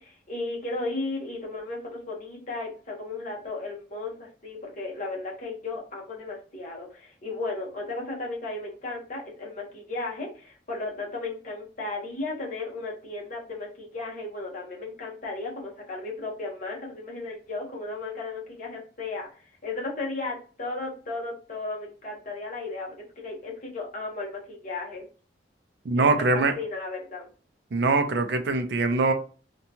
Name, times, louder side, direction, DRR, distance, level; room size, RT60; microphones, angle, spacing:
voice 1, 0.0-25.1 25.9-27.3, left 3 dB, 45° left, 0.9 m, -35 dB
voice 2, 25.9-26.5 27.7-29.1, right 3 dB, 60° right, 0.4 m, -23 dB
2.8 x 2.2 x 2.7 m
head